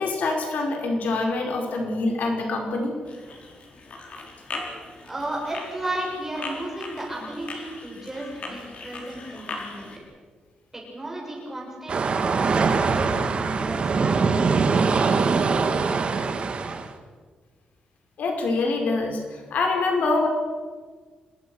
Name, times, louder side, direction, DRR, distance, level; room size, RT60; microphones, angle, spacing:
voice 1, 0.0-2.9 18.2-20.3, left 3 dB, 70° left, 3 dB, 4.8 m, -25 dB
sound 1, 3.0-10.0, left 3 dB, 50° left, 4.6 m, -39 dB
voice 2, 5.0-9.9 10.7-15.9, right 1 dB, 15° right, -1 dB, 7.0 m, -34 dB
sound 2, 11.9-16.9, right 4 dB, 40° right, 1.8 m, -22 dB
26.5 x 21.5 x 6.3 m, 1.5 s
wide cardioid pair, 165°, 3 cm